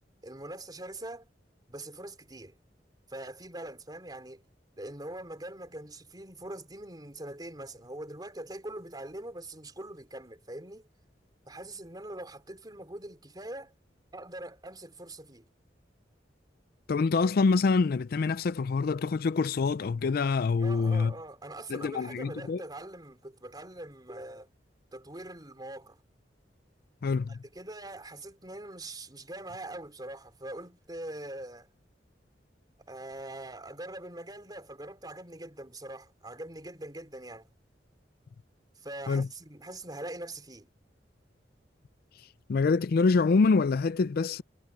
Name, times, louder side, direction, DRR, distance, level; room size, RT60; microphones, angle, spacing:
voice 1, 0.2-1.3 1.7-2.5 3.1-4.4 4.8-10.9 11.5-13.7 14.1-15.5 20.6-24.5 24.9-26.0 27.6-31.7 32.9-37.5 38.8-40.7, right 1 dB, 25° right, 3.8 m, -42 dB
voice 2, 16.9-21.1 21.7-22.6 27.0-27.4 39.1-39.3 42.2-44.4, left 4 dB, 55° left, 0.4 m, -26 dB
head